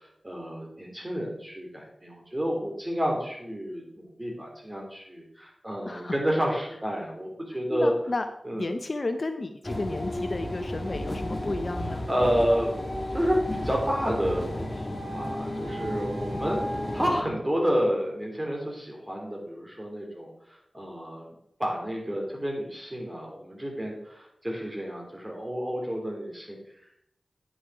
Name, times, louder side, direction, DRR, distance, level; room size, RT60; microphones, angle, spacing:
voice 1, 0.2-7.9 8.5-8.7 12.1-12.7 13.1-16.6 16.9-21.3 21.6-26.6, equal, 20° right, -1 dB, 3.4 m, -30 dB
voice 2, 5.9-6.2 7.7-8.3 8.6-12.0, left 2 dB, 50° left, 8 dB, 0.7 m, -32 dB
sound 1, 9.6-17.2, left 1 dB, 30° left, 1.6 m, -33 dB
9.5 x 6.4 x 4.7 m, 0.76 s
wide cardioid pair, 55°, 0 cm